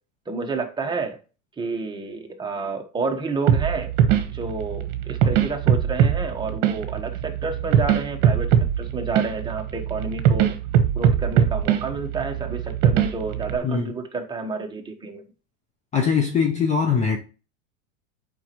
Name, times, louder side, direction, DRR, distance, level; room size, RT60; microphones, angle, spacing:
voice 1, 0.3-1.2 1.6-3.9 4.2-10.5 10.9-15.2, right 4 dB, 10° right, 1.2 m, -30 dB
sound 1, 3.5-13.6, right 9 dB, 50° right, 1.3 m, -21 dB
voice 2, 15.9-17.2, left 6 dB, 20° left, 0.7 m, -21 dB
8.3 x 5.3 x 3.0 m
supercardioid pair, 140°, 37 cm